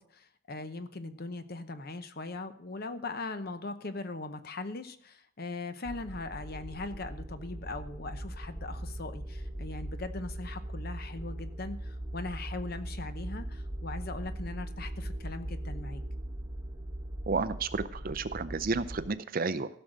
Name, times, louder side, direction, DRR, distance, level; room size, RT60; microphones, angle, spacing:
voice 1, 0.0-16.0, left 3 dB, 45° left, 10 dB, 0.8 m, -40 dB
sound 1, 5.8-19.1, right 1 dB, 15° right, 0.9 m, -40 dB
voice 2, 17.3-19.7, right 4 dB, 40° right, 14 dB, 0.5 m, -31 dB
15.5 x 6.2 x 6.5 m, 0.66 s
head